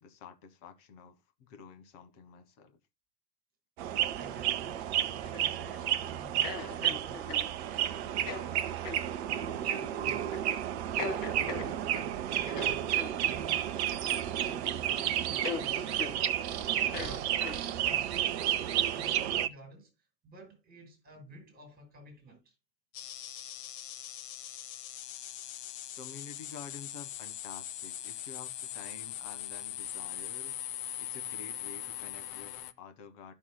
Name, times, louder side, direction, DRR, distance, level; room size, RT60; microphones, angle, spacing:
voice 1, 0.0-2.8 26.0-30.5 31.0-33.3, left 6 dB, 45° left, 1.4 m, -50 dB
sound 1, 3.8-19.5, right 11 dB, 40° right, 0.6 m, -31 dB
voice 2, 4.1-10.4 10.9-13.7 14.0-16.4 16.7-17.4 17.8-19.9 20.2-22.5, equal, 20° right, 5.4 m, -52 dB
sound 2, 5.2-5.8 6.4-7.5 8.2-8.5 8.8-9.0 9.7-9.9 10.3-10.5 11.0-12.1 12.5-13.2 14.1-14.6 14.9-15.0 15.4-15.7 16.0-16.2 16.8-17.9, left 4 dB, 65° left, 1.7 m, -40 dB
sound 3, 22.9-32.7, left 12 dB, 30° left, 0.6 m, -41 dB
14.0 x 6.2 x 2.2 m
figure-of-eight pair, 100°, 50 cm